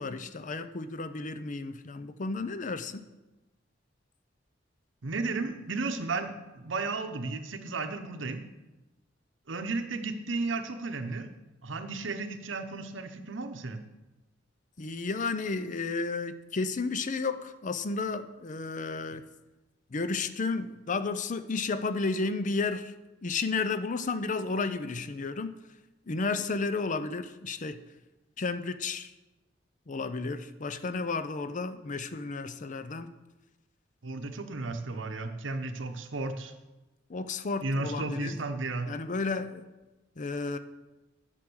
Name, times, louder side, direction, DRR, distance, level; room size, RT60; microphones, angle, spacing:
voice 1, 0.0-3.1 14.8-19.3 19.9-22.9 23.2-25.6 26.1-27.8 28.4-29.1 29.9-33.1 37.1-38.4 38.9-39.7 40.2-40.6, left 4 dB, 40° left, 12 dB, 0.6 m, -32 dB
voice 2, 5.0-8.4 9.5-11.3 11.6-13.8 34.0-36.5 37.6-38.9, right 3 dB, 85° right, 7 dB, 1.0 m, -34 dB
9.9 x 6.1 x 6.3 m, 1.1 s
head